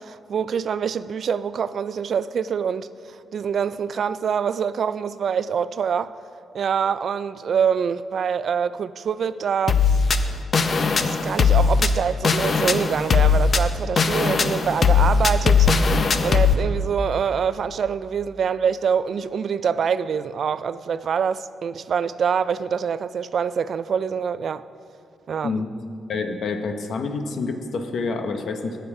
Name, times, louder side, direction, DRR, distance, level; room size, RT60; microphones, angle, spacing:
voice 1, 0.0-2.9 3.3-6.1 6.5-9.8 11.0-15.7 16.2-24.6 25.3-25.5, right 7 dB, 60° right, 0.3 m, -25 dB
sound 1, 9.7-16.5, left 5 dB, 45° left, 0.6 m, -19 dB
voice 2, 26.1-28.8, left 4 dB, 65° left, 0.9 m, -27 dB
18.5 x 6.8 x 4.8 m
cardioid pair, 100°, 0 cm